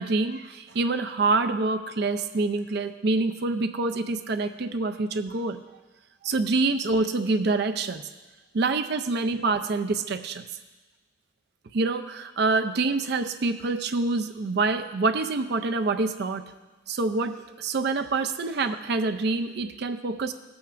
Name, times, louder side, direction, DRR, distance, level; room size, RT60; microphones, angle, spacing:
voice 1, 0.0-5.6 6.2-8.0 8.5-10.4 11.7-16.4 16.9-20.3, right 3 dB, 55° right, 8 dB, 0.5 m, -26 dB
15.0 x 8.6 x 2.5 m, 1.2 s
head